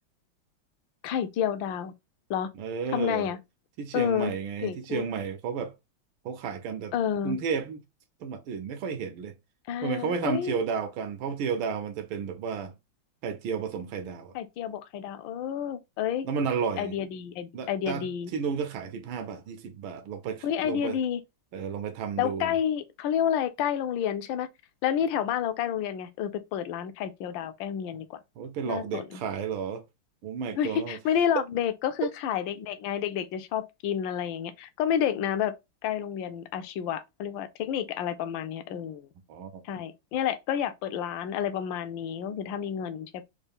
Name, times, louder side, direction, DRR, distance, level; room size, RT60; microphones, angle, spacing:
voice 1, 1.0-1.9 2.3-2.5 2.9-3.4 3.9-4.3 4.6-5.1 6.9-7.4 9.7-10.6 14.3-16.3 16.8-18.3 20.4-21.2 22.2-24.5 24.8-28.2 28.6-29.2 30.6-35.5 35.8-39.1 39.6-43.2, left 9 dB, 75° left, 1.2 m, -30 dB
voice 2, 2.6-3.3 3.8-5.7 6.2-6.9 7.2-7.8 8.2-9.3 9.8-12.7 13.2-14.3 16.2-17.0 17.5-21.0 21.5-22.6 28.4-29.8 30.2-31.0 39.3-39.6, right 6 dB, 75° right, 1.3 m, -32 dB
4.4 x 2.4 x 3.4 m
omnidirectional pair, 2.4 m